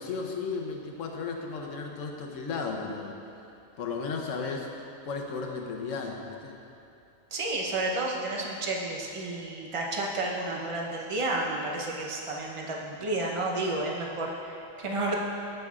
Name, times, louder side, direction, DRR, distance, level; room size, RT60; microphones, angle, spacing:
voice 1, 0.0-3.2 3.8-6.6, left 4 dB, 70° left, 1 dB, 1.1 m, -34 dB
voice 2, 7.3-15.2, right 2 dB, 30° right, -2 dB, 0.7 m, -31 dB
14.5 x 5.8 x 2.4 m, 2.7 s
omnidirectional pair, 1.4 m